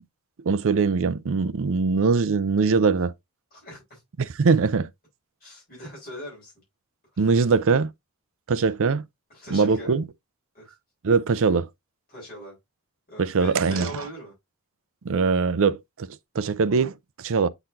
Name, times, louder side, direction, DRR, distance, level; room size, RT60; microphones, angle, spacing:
voice 1, 0.5-3.1 4.2-4.9 7.2-7.9 8.5-9.0 9.5-10.0 11.0-11.7 13.2-13.9 15.0-16.1 16.4-17.5, right 4 dB, 65° right, 0.5 m, -22 dB
voice 2, 3.5-4.0 5.4-6.5 7.1-7.3 9.3-10.0 10.5-10.7 12.1-12.6 13.1-14.3, equal, 45° left, 5.0 m, -40 dB
8.8 x 4.0 x 2.7 m
head